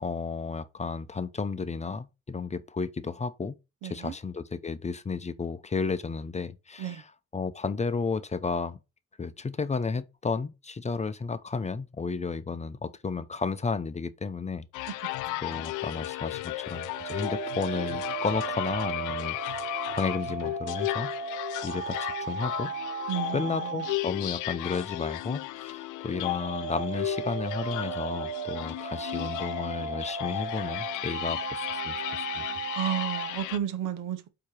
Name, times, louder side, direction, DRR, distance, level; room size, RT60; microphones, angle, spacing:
voice 1, 0.0-3.6 3.8-7.0 7.3-8.8 9.2-14.7 15.4-21.1 21.6-22.7 23.3-32.5, left 4 dB, 25° left, 0.5 m, -33 dB
voice 2, 3.8-4.1 6.8-7.0 15.3-15.6 23.1-23.8 32.8-34.2, right 10 dB, 80° right, 0.9 m, -33 dB
sound 1, 14.7-33.6, left 18 dB, 85° left, 0.5 m, -35 dB
sound 2, 16.7-24.0 26.0-33.3, right 6 dB, 60° right, 1.8 m, -36 dB
8.4 x 2.9 x 4.7 m
cardioid pair, 90°, 30 cm